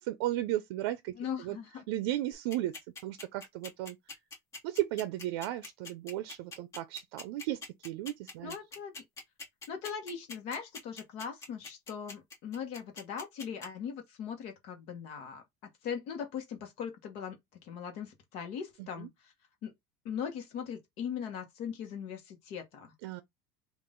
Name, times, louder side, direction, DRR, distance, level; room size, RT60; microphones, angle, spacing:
voice 1, 0.0-1.1 1.4-1.6 1.9-2.7 3.0-4.2 4.6-8.6 18.8-19.1 23.0-23.2, right 14 dB, 85° right, 0.5 m, -35 dB
voice 2, 1.2-1.8 8.4-9.0 9.7-15.4 15.8-17.4 17.6-19.3 19.6-19.7 20.0-22.9, left 7 dB, 55° left, 1.1 m, -40 dB
sound 1, 2.3-13.7, left 3 dB, 25° left, 1.6 m, -44 dB
3.7 x 2.5 x 3.6 m
cardioid pair, 160°, 13 cm